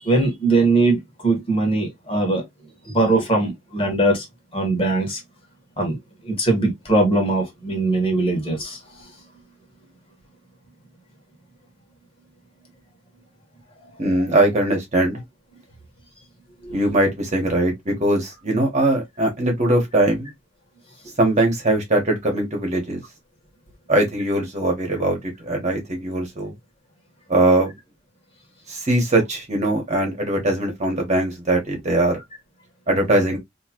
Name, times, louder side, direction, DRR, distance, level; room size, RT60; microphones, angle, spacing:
voice 1, 0.0-2.4 2.9-4.2 4.5-5.2 5.8-6.0 6.2-8.8 16.6-16.8, right 2 dB, 30° left, 1.5 m, -20 dB
voice 2, 14.0-15.2 16.7-20.3 21.2-23.0 23.9-26.5 27.3-27.7 28.7-32.2 32.9-33.4, right 1 dB, 35° right, 1.4 m, -21 dB
3.2 x 2.8 x 2.9 m
head